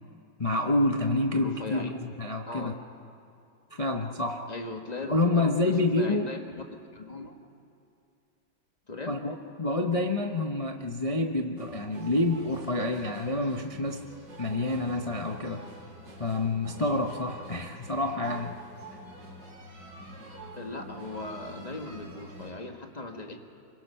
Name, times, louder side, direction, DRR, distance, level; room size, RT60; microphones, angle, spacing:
voice 1, 0.4-2.7 3.7-4.5 5.0-6.3 9.1-14.0 14.4-15.6 16.2-18.6, left 2 dB, 45° left, 3 dB, 0.4 m, -28 dB
voice 2, 1.3-1.9 2.5-2.8 4.5-6.6 6.9-7.4 8.9-9.2 20.6-23.4, left 2 dB, 25° left, 4 dB, 1.5 m, -39 dB
sound 1, 11.6-22.5, right 1 dB, 70° right, 4.3 m, -46 dB
25.0 x 22.5 x 5.6 m, 2.6 s
omnidirectional pair, 2.0 m